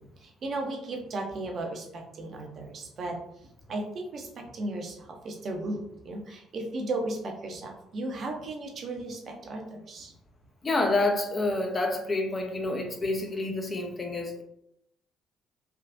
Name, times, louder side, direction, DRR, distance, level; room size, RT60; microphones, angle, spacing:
voice 1, 0.0-3.2 3.7-10.1, right 2 dB, 50° right, 2 dB, 0.7 m, -35 dB
voice 2, 10.6-14.4, left 2 dB, 30° left, 3 dB, 0.6 m, -28 dB
3.5 x 2.3 x 2.5 m, 0.77 s
hypercardioid pair, 50°, 0 cm